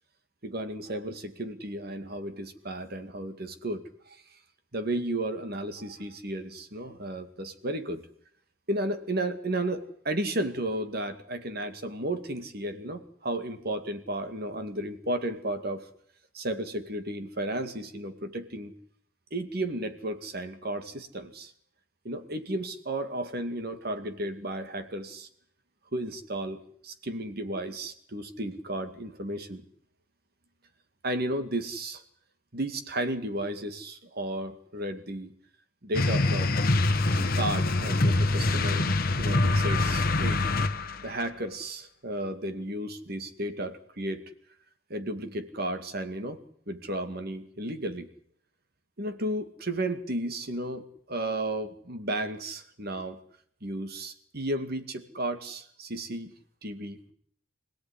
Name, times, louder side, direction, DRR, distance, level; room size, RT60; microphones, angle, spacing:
voice 1, 0.4-4.4 4.7-8.0 8.7-15.9 16.3-18.7 19.3-21.5 22.0-25.3 25.9-29.6 31.0-32.0 32.5-35.3 35.8-36.6 37.1-40.4 41.0-44.2 44.9-46.4 46.7-48.1 49.0-53.2 53.6-56.3 56.6-57.1, right 1 dB, 50° right, 9 dB, 2.2 m, -33 dB
sound 1, 35.9-41.1, left 2 dB, 45° left, 1.2 m, -25 dB
26.0 x 17.0 x 9.9 m, 0.65 s
head